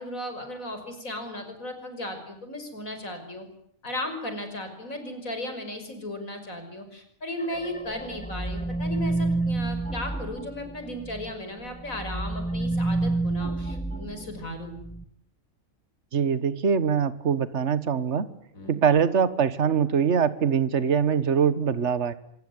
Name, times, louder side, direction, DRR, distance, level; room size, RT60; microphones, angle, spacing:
voice 1, 0.0-3.5 3.8-14.8 18.5-18.8, left 1 dB, 80° left, 7 dB, 6.2 m, -36 dB
sound 1, 7.4-11.3 11.6-15.0, right 2 dB, 5° left, 1.2 m, -29 dB
voice 2, 16.1-18.3 18.7-22.1, right 7 dB, 55° right, 14 dB, 1.7 m, -23 dB
26.5 x 22.0 x 9.7 m, 0.69 s
omnidirectional pair, 1.4 m